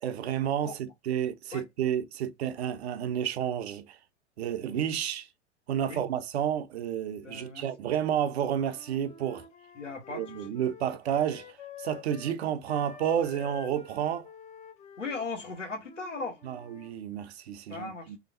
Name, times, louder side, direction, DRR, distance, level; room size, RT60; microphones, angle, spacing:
voice 1, 0.0-4.0 4.4-5.3 5.7-9.4 10.1-11.5 11.8-14.3 16.4-18.2, right 9 dB, 60° right, 0.6 m, -30 dB
voice 2, 7.2-7.6 9.7-10.2 15.0-16.4 17.7-18.1, left 3 dB, 85° left, 1.4 m, -37 dB
Wind instrument woodwind instrument, 8.5-12.4 12.6-17.0, left 7 dB, 20° left, 0.5 m, -49 dB
3.4 x 2.8 x 2.6 m
figure-of-eight pair, 95°, 36 cm